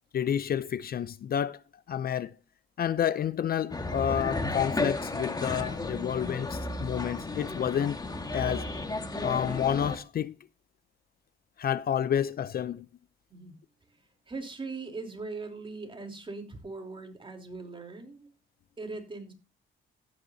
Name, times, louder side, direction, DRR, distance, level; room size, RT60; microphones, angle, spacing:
voice 1, 0.1-1.6 1.9-2.4 2.8-8.0 8.3-8.7 9.2-10.3 11.6-12.9, left 9 dB, 50° left, 0.5 m, -29 dB
sound 1, 3.7-10.0, left 2 dB, 20° left, 1.7 m, -33 dB
voice 2, 14.3-18.3 18.8-19.3, right 3 dB, 25° right, 3.6 m, -40 dB
15.0 x 9.7 x 2.7 m
cardioid pair, 90°, 20 cm